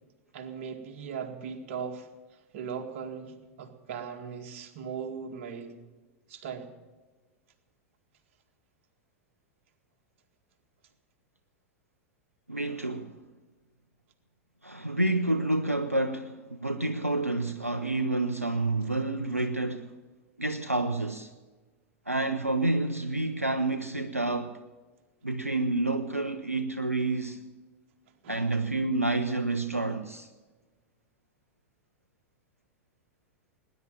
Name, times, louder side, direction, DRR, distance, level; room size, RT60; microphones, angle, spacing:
voice 1, 0.3-2.1 2.5-5.8 6.3-6.7 28.2-28.6, right 6 dB, 55° right, 2.0 m, -38 dB
voice 2, 12.5-13.1 14.6-19.9 20.4-21.3 22.1-24.6 25.2-27.4 28.3-30.3, right 2 dB, 90° right, 0.7 m, -29 dB
19.0 x 10.5 x 7.3 m
figure-of-eight pair, 90°, 8 cm